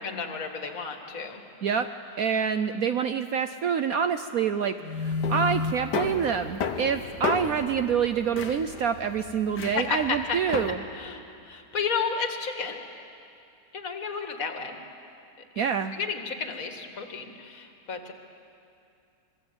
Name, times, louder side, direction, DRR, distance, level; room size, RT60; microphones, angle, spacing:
voice 1, 0.0-1.4 9.6-10.4 10.9-12.8 13.7-14.8 15.6-18.1, left 5 dB, 50° left, 5 dB, 2.3 m, -32 dB
voice 2, 2.2-10.8 15.6-15.9, right 7 dB, 60° right, 9 dB, 1.1 m, -27 dB
sound 1, 4.8-10.7, left 5 dB, 70° left, 1.9 m, -32 dB
26.5 x 22.5 x 8.1 m, 2.6 s
omnidirectional pair, 1.9 m